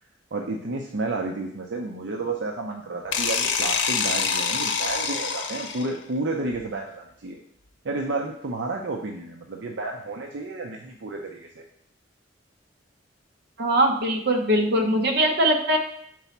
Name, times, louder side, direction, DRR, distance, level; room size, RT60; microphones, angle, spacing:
voice 1, 0.3-7.4 7.8-11.6, right 3 dB, 80° right, 2 dB, 0.6 m, -31 dB
sound 1, 3.1-6.0, left 6 dB, 90° left, 0.6 m, -26 dB
voice 2, 13.6-15.8, right 1 dB, 60° right, 3 dB, 1.0 m, -21 dB
4.7 x 4.0 x 5.7 m, 0.69 s
head